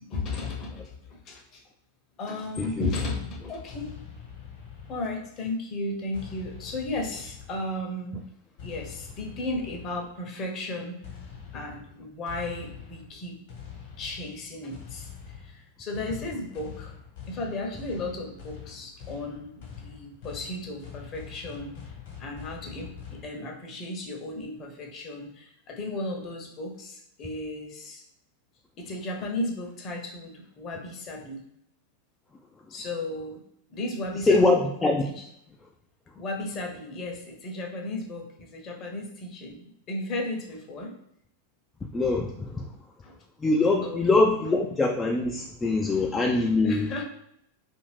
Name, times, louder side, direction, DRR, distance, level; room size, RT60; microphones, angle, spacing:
voice 1, 0.0-1.6 2.2-3.9 4.9-8.2 8.6-11.0 11.5-13.4 14.0-16.9 17.3-21.8 22.2-28.0 28.8-31.4 32.7-33.4 33.7-34.7 35.0-35.1 36.2-40.9 43.0-43.2 43.8-44.0 45.9-46.0 46.6-47.0, left 2 dB, 30° left, 1 dB, 0.7 m, -35 dB
voice 2, 2.6-2.9 34.2-35.0 41.9-42.7 43.4-46.9, left 3 dB, 15° left, 0 dB, 0.3 m, -23 dB
sound 1, 3.7-5.5 6.1-7.9 8.6-10.2 11.0-23.3, left 7 dB, 50° left, 1.1 m, -44 dB
2.6 x 2.5 x 3.2 m, 0.73 s
figure-of-eight pair, 90°, 0 cm